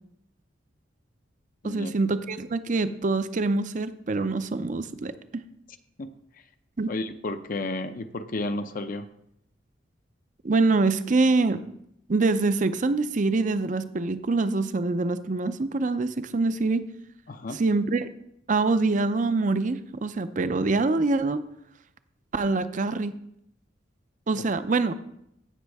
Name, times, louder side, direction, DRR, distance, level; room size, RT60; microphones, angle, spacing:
voice 1, 1.6-5.4 6.8-6.9 10.4-11.6 12.1-16.9 17.5-18.1 18.5-21.4 22.3-23.1 24.3-24.9, right 3 dB, 45° right, 12 dB, 0.5 m, -25 dB
voice 2, 6.9-9.1 17.3-17.6 24.4-24.5, left 2 dB, 50° left, 9 dB, 0.6 m, -32 dB
15.5 x 6.3 x 3.5 m, 0.75 s
head